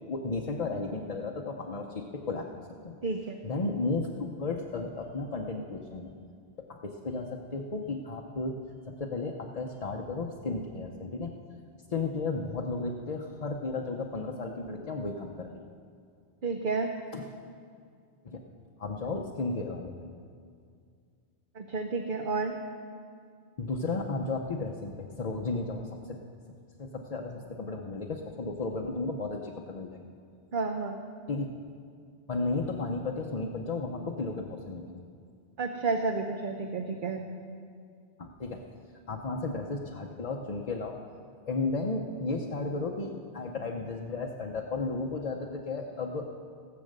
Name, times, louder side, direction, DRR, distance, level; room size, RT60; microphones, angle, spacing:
voice 1, 0.1-2.5 2.8-3.0 3.4-6.1 6.6-7.3 7.5-8.6 8.9-11.3 11.9-15.6 17.1-17.3 18.2-18.4 18.8-19.9 23.6-26.2 26.8-29.9 31.3-31.5 32.3-34.9 38.2-38.6 39.1-41.0 41.5-46.2, left 3 dB, 40° left, 0 dB, 0.8 m, -34 dB
voice 2, 3.0-3.4 16.4-16.9 21.5-22.6 30.5-31.0 35.6-37.2, right 3 dB, 50° right, 4 dB, 0.9 m, -31 dB
17.5 x 7.7 x 6.6 m, 2.2 s
omnidirectional pair, 1.2 m